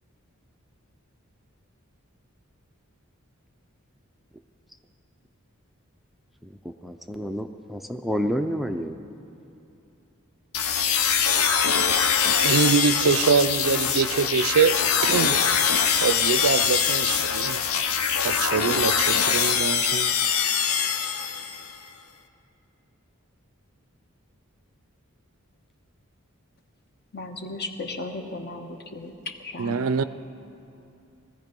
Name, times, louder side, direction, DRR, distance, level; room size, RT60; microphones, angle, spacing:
voice 1, 6.4-9.0, equal, ahead, 5 dB, 0.4 m, -29 dB
sound 1, 10.5-21.7, left 7 dB, 85° left, 0.8 m, -23 dB
voice 2, 12.4-14.8 15.0-15.4 15.9-17.6 18.2-20.1 29.6-30.0, right 6 dB, 85° right, 14 dB, 0.5 m, -24 dB
voice 3, 27.1-29.8, left 2 dB, 50° left, 5 dB, 1.2 m, -35 dB
19.5 x 14.0 x 5.3 m, 2.8 s
head